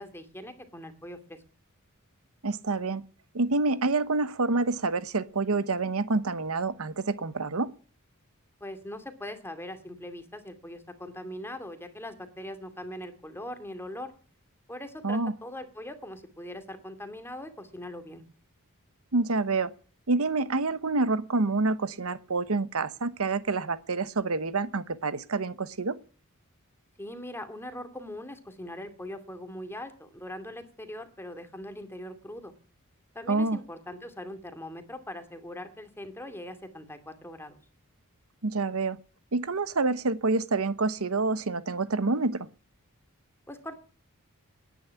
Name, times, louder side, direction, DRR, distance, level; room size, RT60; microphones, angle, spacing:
voice 1, 0.0-1.4 8.6-14.1 14.7-18.2 27.0-32.5 33.1-37.6 43.5-43.8, left 1 dB, 10° left, 2.5 m, -41 dB
voice 2, 2.4-3.0 3.3-7.7 15.0-15.3 19.1-19.7 20.1-26.0 33.3-33.6 38.4-39.0 39.3-42.5, right 3 dB, 75° right, 1.0 m, -27 dB
18.5 x 10.5 x 5.8 m
head